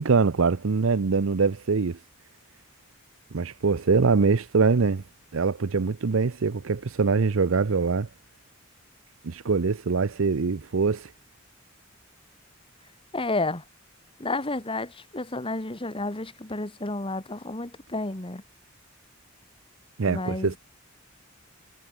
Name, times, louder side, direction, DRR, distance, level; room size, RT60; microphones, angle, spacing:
voice 1, 0.0-2.0 3.3-5.0 5.3-8.1 9.2-11.1 20.0-20.6, right 4 dB, 75° right, 0.6 m, -23 dB
voice 2, 13.1-13.6 14.2-18.4 20.1-20.6, left 2 dB, 25° left, 1.9 m, -31 dB
head